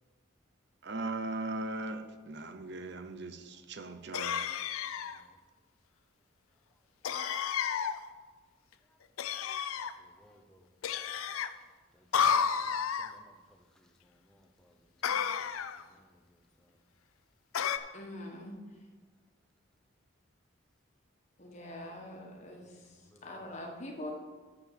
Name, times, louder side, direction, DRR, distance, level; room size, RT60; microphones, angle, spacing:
voice 1, 0.8-4.4, right 2 dB, 55° right, 8 dB, 0.7 m, -38 dB
sound 1, 4.1-5.2 7.0-8.0 9.2-9.9 10.8-11.5 12.1-13.1 15.0-15.8 17.5-17.8, left 7 dB, 85° left, 0.5 m, -31 dB
voice 2, 5.0-5.4 8.8-9.6 10.0-10.7 11.2-16.8 21.8-23.7, equal, 5° left, 3 dB, 0.7 m, -65 dB
voice 3, 17.9-18.6 21.4-24.1, left 1 dB, 35° left, 0 dB, 1.4 m, -44 dB
7.0 x 6.8 x 6.9 m, 1.4 s
head